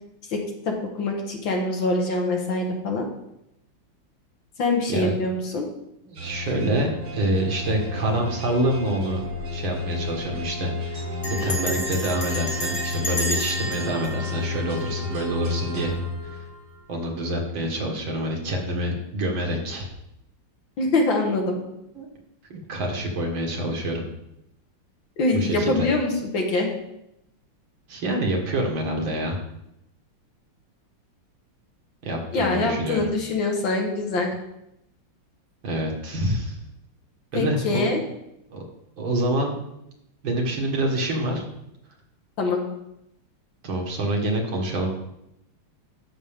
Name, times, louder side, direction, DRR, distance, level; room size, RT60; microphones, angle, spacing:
voice 1, 0.3-3.0 4.6-5.7 20.8-21.6 25.2-26.7 32.3-34.3 37.3-38.0 42.4-42.6, left 2 dB, 60° left, 1 dB, 2.0 m, -24 dB
voice 2, 6.1-9.2 9.5-15.9 16.3-16.4 16.9-19.9 22.0-22.1 22.5-24.0 25.3-25.9 27.9-29.4 32.0-33.1 35.6-36.6 37.3-37.8 38.5-38.6 39.0-39.5 40.2-41.4 43.6-44.9, right 1 dB, 65° right, 1 dB, 2.2 m, -26 dB
sound 1, 6.2-16.8, left 4 dB, 80° right, 4.2 m, -32 dB
Bell, 9.1-9.5 9.7-9.8 10.1-10.4 11.2-15.3, left 1 dB, 45° left, 2.0 m, -31 dB
13.0 x 6.0 x 3.6 m, 0.83 s
omnidirectional pair, 2.4 m